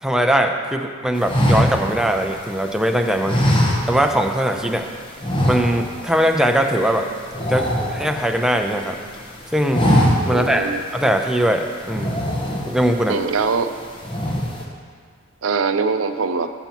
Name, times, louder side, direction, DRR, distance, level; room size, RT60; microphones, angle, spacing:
voice 1, 0.0-3.4 3.9-4.8 5.5-7.1 7.5-9.0 9.5-9.9 10.3-12.1 12.6-13.2, equal, 5° right, 3 dB, 0.6 m, -20 dB
sound 1, 1.2-2.7 3.2-4.3 4.6-4.8 5.2-6.1 6.4-6.6 6.9-8.6 9.0-9.3 9.6-10.5 11.0-11.1 11.8-13.0 13.4-13.8 14.0-14.6, equal, 25° left, 1.1 m, -21 dB
voice 2, 10.3-10.8 13.1-13.7 15.4-16.5, right 4 dB, 80° right, 9 dB, 0.6 m, -22 dB
18.5 x 7.0 x 3.0 m, 2.1 s
head